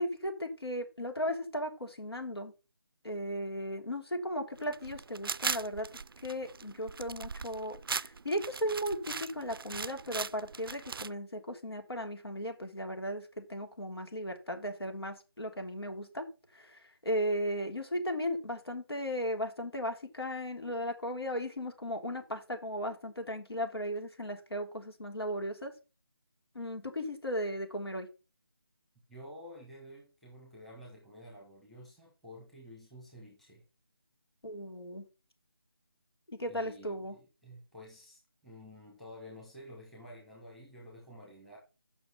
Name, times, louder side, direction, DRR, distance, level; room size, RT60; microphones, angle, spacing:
voice 1, 0.0-2.5 3.0-5.9 6.2-16.3 16.5-25.7 26.5-28.1 34.4-35.1 36.3-37.2, equal, 85° left, 3.3 m, -36 dB
sound 1, 4.6-11.1, right 5 dB, 65° right, 0.4 m, -39 dB
voice 2, 29.1-33.6 36.5-41.6, equal, ahead, 1.2 m, -51 dB
7.9 x 5.8 x 5.6 m
figure-of-eight pair, 165°, 13 cm